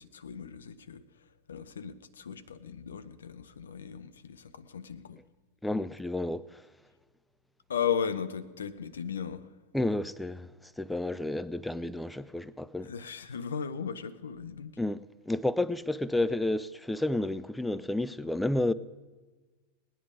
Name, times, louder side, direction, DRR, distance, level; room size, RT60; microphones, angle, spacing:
voice 1, 0.0-5.2 7.7-9.6 12.8-14.8, left 7 dB, 65° left, 0.7 m, -36 dB
voice 2, 5.6-6.7 9.7-12.9 14.8-18.7, left 2 dB, 5° left, 0.4 m, -31 dB
18.5 x 10.0 x 5.1 m
figure-of-eight pair, 90°, 0 cm